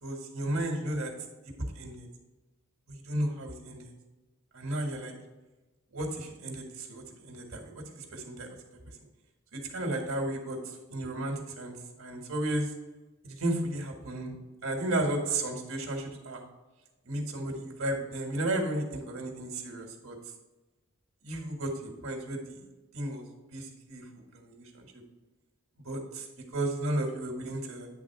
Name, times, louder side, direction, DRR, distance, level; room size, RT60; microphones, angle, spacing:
voice 1, 0.0-1.1 1.5-2.1 2.9-3.9 4.5-5.1 5.9-8.5 9.5-10.6 10.9-12.7 13.2-14.4 14.6-16.4 17.1-20.2 21.2-22.6 22.9-23.2 23.5-24.0 24.3-24.9 25.9-26.3 26.5-27.9, right 1 dB, 70° right, 2 dB, 1.6 m, -33 dB
9.7 x 3.7 x 4.7 m, 1.1 s
head